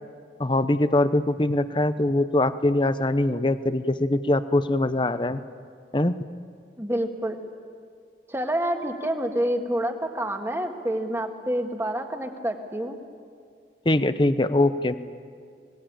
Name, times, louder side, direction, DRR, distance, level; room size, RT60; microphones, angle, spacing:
voice 1, 0.4-5.4 5.9-6.2 13.8-15.0, left 1 dB, 25° left, 12 dB, 0.8 m, -22 dB
voice 2, 6.8-7.4 8.3-13.0, right 1 dB, 15° right, 4 dB, 1.7 m, -28 dB
25.5 x 21.0 x 8.8 m, 2.2 s
head